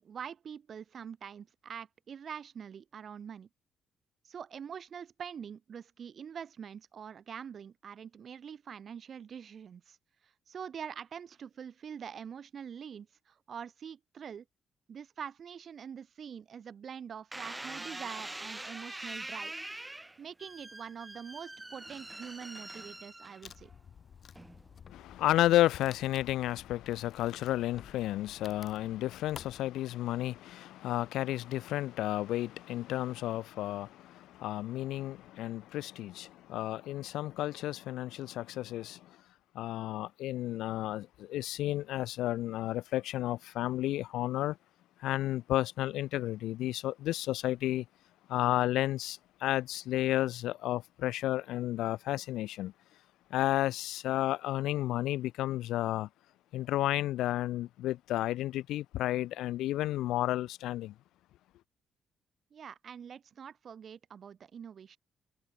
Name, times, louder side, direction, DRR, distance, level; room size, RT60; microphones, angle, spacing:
voice 1, 0.0-3.5 4.2-10.0 10.2-14.4 14.9-19.5 20.2-23.7 62.5-65.0, right 7 dB, 55° right, 2.0 m, -45 dB
sound 1, 17.3-23.7 24.4-24.8, right 2 dB, 15° right, 7.5 m, -44 dB
Wood, 23.4-29.6, left 7 dB, 55° left, 6.7 m, -53 dB
voice 2, 24.9-39.2 39.5-44.6 45.0-47.9 48.3-52.7 53.3-56.1 56.5-60.9, left 14 dB, 85° left, 0.5 m, -32 dB
cardioid pair, 90°, 0 cm